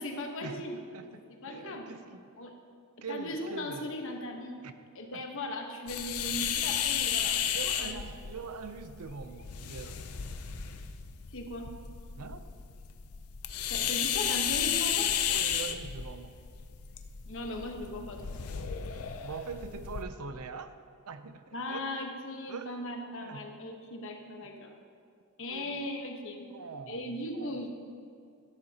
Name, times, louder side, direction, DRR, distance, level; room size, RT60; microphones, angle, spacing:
voice 1, 0.0-0.8 1.1-1.9 2.4-2.5 3.1-4.6 4.9-8.0 11.3-11.7 13.7-15.1 17.3-18.4 21.5-24.7 25.4-26.5 26.9-27.7, left 1 dB, 60° left, 3 dB, 1.2 m, -38 dB
voice 2, 0.9-2.4 3.0-4.0 4.6-4.7 5.1-5.2 6.7-6.8 7.5-10.0 12.2-12.5 15.3-16.4 19.2-20.7 21.1-21.8 22.5-22.8 23.2-23.5 24.4-24.5 25.5-25.8 26.5-27.7, right 5 dB, 90° right, 10 dB, 0.6 m, -43 dB
sound 1, 5.9-20.0, left 9 dB, 75° left, 0.6 m, -33 dB
13.0 x 11.5 x 2.9 m, 2.5 s
head